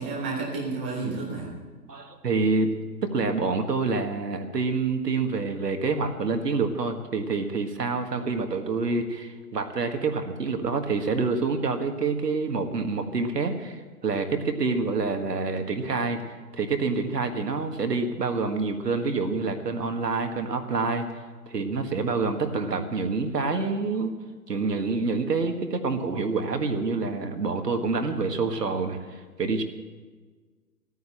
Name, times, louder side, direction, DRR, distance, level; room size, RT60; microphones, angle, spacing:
voice 1, 0.0-1.5 8.2-8.4 22.5-22.7, right 3 dB, 5° right, -3 dB, 0.4 m, -32 dB
voice 2, 1.9-2.7 3.1-16.2 16.5-21.0 21.5-24.1 24.5-29.6, right 4 dB, 80° right, 5 dB, 1.7 m, -27 dB
13.5 x 9.3 x 7.6 m, 1.4 s
figure-of-eight pair, 130°, 48 cm